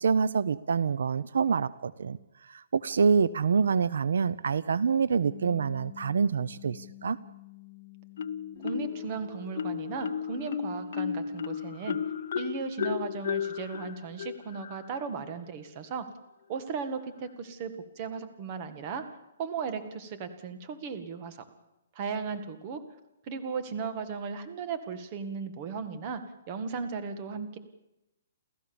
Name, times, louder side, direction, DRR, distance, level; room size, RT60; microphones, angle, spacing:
voice 1, 0.0-2.2 2.5-7.2, right 6 dB, 80° right, 19 dB, 0.7 m, -26 dB
Bass guitar, 5.1-11.4, left 17 dB, 75° left, 1.5 m, -50 dB
Marimba xylophone, 8.2-9.1 9.5-15.1, left 7 dB, 55° left, 0.7 m, -34 dB
Guitar, 8.6-12.5, left 2 dB, 30° left, 3.8 m, -51 dB
voice 2, 8.6-12.0 12.4-16.1 16.5-19.1 19.4-21.4 22.0-22.8 23.3-26.2 26.5-27.6, right 5 dB, 25° right, 9 dB, 1.7 m, -36 dB
29.5 x 14.0 x 7.1 m, 0.92 s
hypercardioid pair, 175°, 0 cm